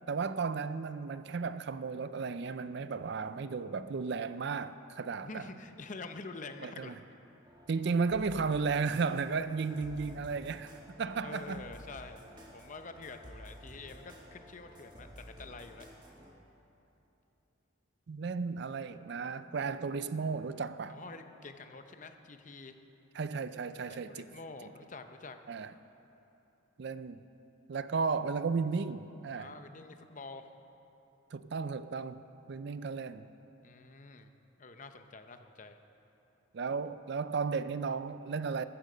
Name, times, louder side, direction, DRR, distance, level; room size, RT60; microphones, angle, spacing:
voice 1, 0.1-5.4 6.6-6.9 7.7-10.7 11.0-11.6 18.1-21.0 23.1-24.3 25.5-25.7 26.8-27.2 27.7-29.5 31.3-32.2 32.5-33.3 36.5-38.6, right 5 dB, 55° right, 0.4 m, -34 dB
voice 2, 5.2-7.0 11.2-15.9 19.6-19.7 20.9-22.7 23.9-25.4 29.3-30.5 33.6-34.3 34.6-35.8, left 3 dB, 40° left, 0.7 m, -47 dB
sound 1, 7.5-16.3, equal, 20° right, 1.6 m, -52 dB
15.0 x 13.0 x 5.1 m
head